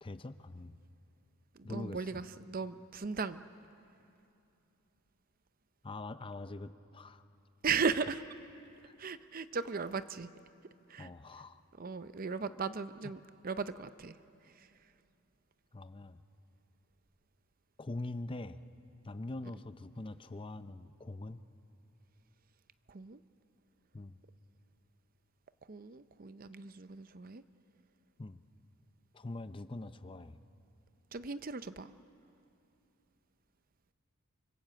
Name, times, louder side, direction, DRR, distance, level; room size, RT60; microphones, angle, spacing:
voice 1, 0.0-0.8 1.6-2.1 5.8-7.2 8.8-8.9 11.0-11.6 13.0-13.1 15.7-16.2 17.8-18.6 19.0-21.4 23.9-24.2 28.2-28.4 29.1-30.4, left 2 dB, 25° left, 12 dB, 0.5 m, -43 dB
voice 2, 1.6-3.4 7.6-8.2 9.0-10.3 10.9-11.1 11.8-14.2 14.6-14.7 22.9-23.2 25.7-27.4 31.1-31.9, right 5 dB, 40° right, 13 dB, 0.6 m, -37 dB
25.5 x 25.0 x 7.6 m, 2.7 s
head